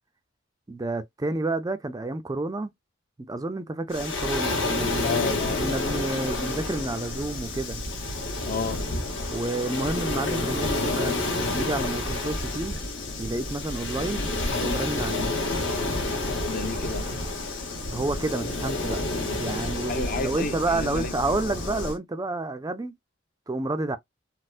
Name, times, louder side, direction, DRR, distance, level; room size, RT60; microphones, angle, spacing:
voice 1, 0.7-2.7 3.2-5.2 5.6-7.8 9.3-11.2 11.5-12.8 13.2-14.3 14.6-15.3 17.9-19.0 19.4-23.0 23.5-24.0, right 2 dB, 20° right, 0.4 m, -30 dB
Waves surf, 3.9-22.0, left 2 dB, 75° left, 1.4 m, -29 dB
voice 2, 5.0-5.6 8.5-8.8 16.5-17.1 19.9-21.4, left 4 dB, 45° left, 0.7 m, -32 dB
4.1 x 2.1 x 2.4 m
head